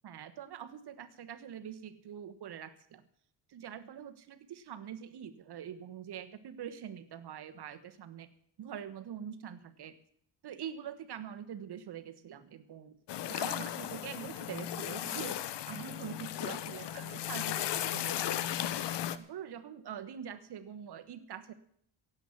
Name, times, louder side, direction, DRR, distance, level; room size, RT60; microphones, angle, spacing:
voice 1, 0.0-3.0 3.5-8.3 8.6-10.0 10.4-13.0 13.3-18.4 19.1-21.5, right 9 dB, 60° right, 11 dB, 1.3 m, -44 dB
sound 1, 13.1-19.2, left 12 dB, 65° left, 0.9 m, -36 dB
16.5 x 8.1 x 7.3 m, 0.64 s
cardioid pair, 105°, 44 cm